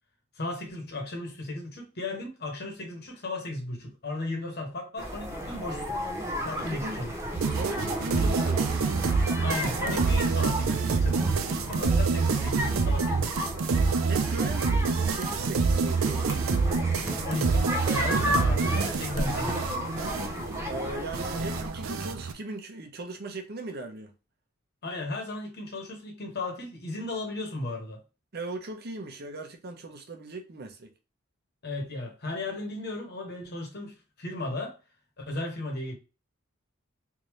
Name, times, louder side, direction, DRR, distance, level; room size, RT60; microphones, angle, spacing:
voice 1, 0.3-6.0 6.4-7.1 9.4-13.4 17.2-19.7 24.8-28.0 31.6-34.8 35.2-35.9, left 2 dB, 55° left, 1.3 m, -35 dB
sound 1, 5.0-21.7, equal, 15° right, 0.8 m, -33 dB
voice 2, 6.6-7.0 7.5-8.8 14.1-16.4 20.7-24.1 28.3-30.9, right 2 dB, 50° right, 0.8 m, -38 dB
sound 2, 7.4-22.3, right 4 dB, 85° right, 0.5 m, -27 dB
3.6 x 2.7 x 3.1 m
head